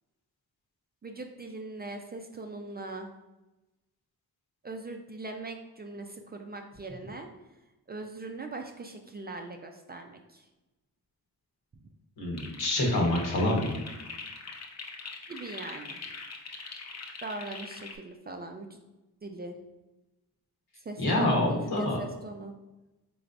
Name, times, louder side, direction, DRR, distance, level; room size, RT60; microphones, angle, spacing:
voice 1, 1.0-3.1 4.6-7.3 7.9-10.5 11.7-11.8 15.3-16.0 17.2-18.8 19.2-19.6 20.8-22.5, right 2 dB, 25° right, 4 dB, 0.4 m, -41 dB
voice 2, 12.2-13.8 21.0-22.0, left 1 dB, 70° left, -1 dB, 1.1 m, -26 dB
sound 1, 12.3-18.0, left 4 dB, 40° left, 0.7 m, -42 dB
3.9 x 3.2 x 2.5 m, 1.0 s
cardioid pair, 60°, 39 cm